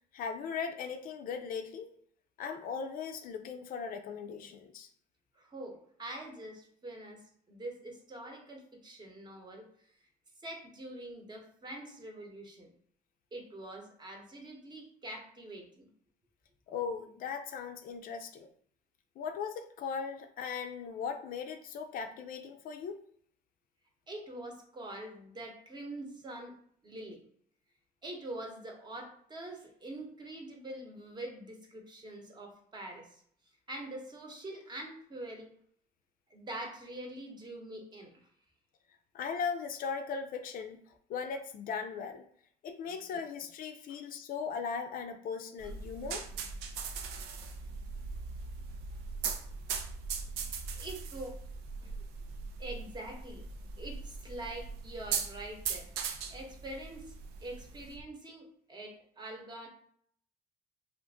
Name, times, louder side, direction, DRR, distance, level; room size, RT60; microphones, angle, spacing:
voice 1, 0.1-1.9 2.4-4.9 16.7-18.5 19.2-23.0 39.1-40.8 41.1-42.3 42.6-46.3, left 6 dB, 55° left, 6 dB, 0.4 m, -38 dB
voice 2, 5.3-7.2 7.5-9.6 10.4-12.7 13.3-15.9 24.1-26.6 26.8-27.2 28.0-33.2 33.7-35.5 36.3-38.3 42.9-43.1 50.3-50.4 50.7-51.4 51.8-51.9 52.6-53.4 53.8-55.9 56.3-57.1 57.4-59.7, right 1 dB, 25° right, 1 dB, 0.8 m, -44 dB
sound 1, 45.6-58.0, right 5 dB, 90° right, 0.5 m, -40 dB
2.5 x 2.5 x 3.5 m, 0.62 s
cardioid pair, 110°, 17 cm